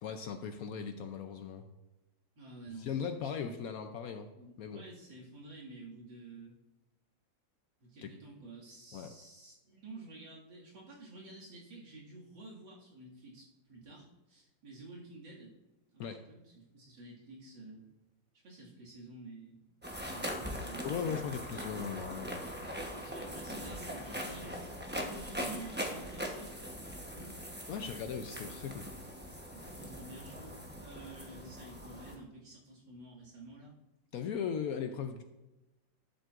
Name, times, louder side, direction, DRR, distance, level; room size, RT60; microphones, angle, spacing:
voice 1, 0.0-1.7 2.8-4.3 4.6-4.8 8.0-8.1 8.9-9.1 16.0-16.2 20.8-22.4 27.7-28.9 34.1-35.2, left 7 dB, 70° left, 7 dB, 0.8 m, -38 dB
voice 2, 2.4-3.7 4.3-6.6 7.8-15.5 15.9-17.8 18.4-19.6 20.0-20.3 20.6-21.3 22.9-26.5 26.8-27.3 29.3-33.7 35.0-35.2, right 2 dB, 90° right, -5 dB, 2.8 m, -51 dB
sound 1, 19.8-32.2, equal, 10° right, 0.5 m, -41 dB
11.0 x 7.5 x 2.5 m, 1.0 s
omnidirectional pair, 2.0 m